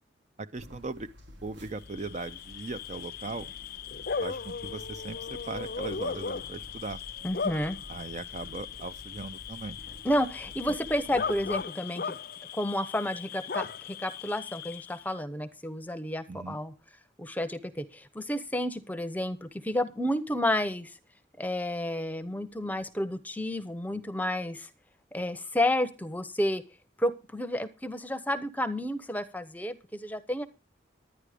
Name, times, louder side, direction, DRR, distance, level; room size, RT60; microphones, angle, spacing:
voice 1, 0.4-1.1 1.4-3.5 4.2-7.0 7.9-9.8 16.3-16.6, right 3 dB, 35° right, 0.5 m, -39 dB
sound 1, 0.5-11.6, equal, 65° right, 1.9 m, -50 dB
Bark / Cricket, 1.8-15.1, left 6 dB, 50° left, 0.5 m, -38 dB
voice 2, 7.2-7.8 10.0-12.1 12.5-16.7 17.2-20.9 21.4-24.7 25.1-26.6 27.0-30.5, left 1 dB, 10° left, 0.8 m, -31 dB
11.5 x 10.0 x 5.0 m
head